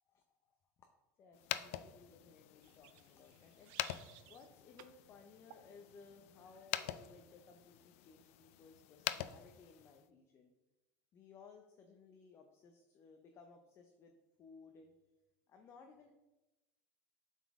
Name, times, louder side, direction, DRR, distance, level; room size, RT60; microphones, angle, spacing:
voice 1, 0.1-0.9 1.2-10.5 11.1-14.1 14.4-14.9 15.5-16.1, left 5 dB, 35° left, 4 dB, 0.6 m, -60 dB
sound 1, 1.3-10.1, left 13 dB, 90° left, 0.4 m, -45 dB
sound 2, 2.6-4.5 4.8-5.0 5.5-5.7, right 13 dB, 75° right, 0.4 m, -60 dB
7.7 x 4.1 x 3.6 m, 1.0 s
cardioid pair, 135°, 7 cm